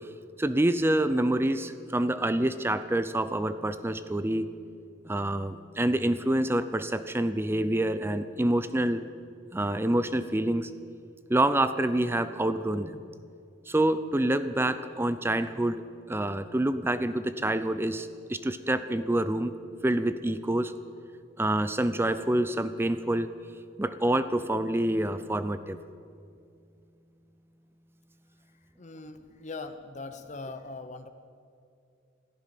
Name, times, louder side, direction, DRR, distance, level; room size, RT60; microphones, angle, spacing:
voice 1, 0.4-4.5 5.0-9.0 9.5-10.7 11.3-13.0 13.7-15.8 16.1-19.5 19.8-20.7 21.4-23.3 23.8-25.8, right 1 dB, 10° right, 12 dB, 0.5 m, -27 dB
voice 2, 28.8-31.1, left 3 dB, 35° left, 9 dB, 0.8 m, -41 dB
16.0 x 14.0 x 5.8 m, 2.4 s
head